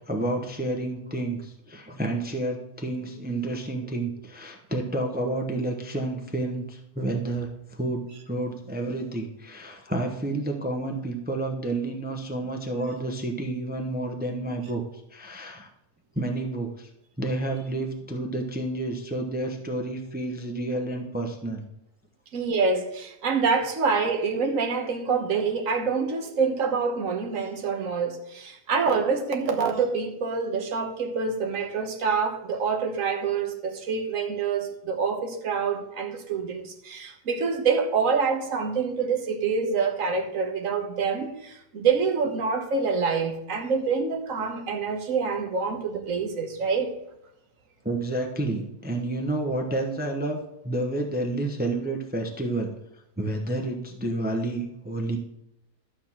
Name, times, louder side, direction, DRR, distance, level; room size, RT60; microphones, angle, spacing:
voice 1, 0.1-14.8 15.1-15.7 16.1-16.9 17.2-21.7 47.8-50.4 50.6-52.7 53.2-55.2, right 2 dB, 10° right, 3 dB, 0.8 m, -30 dB
voice 2, 22.3-46.9, right 5 dB, 55° right, 4 dB, 1.6 m, -26 dB
12.5 x 4.3 x 7.3 m, 0.83 s
omnidirectional pair, 1.7 m